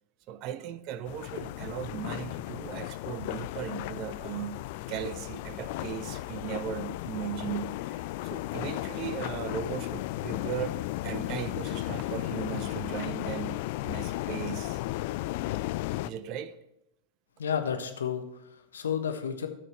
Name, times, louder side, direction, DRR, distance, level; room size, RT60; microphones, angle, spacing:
voice 1, 0.3-4.6 4.9-14.8 16.0-16.6, right 10 dB, 40° right, 13 dB, 0.7 m, -37 dB
sound 1, 1.1-16.1, left 17 dB, 50° left, 0.3 m, -35 dB
voice 2, 17.4-19.5, left 8 dB, 65° left, 6 dB, 1.1 m, -32 dB
14.0 x 6.2 x 3.2 m, 0.87 s
figure-of-eight pair, 90°, 0 cm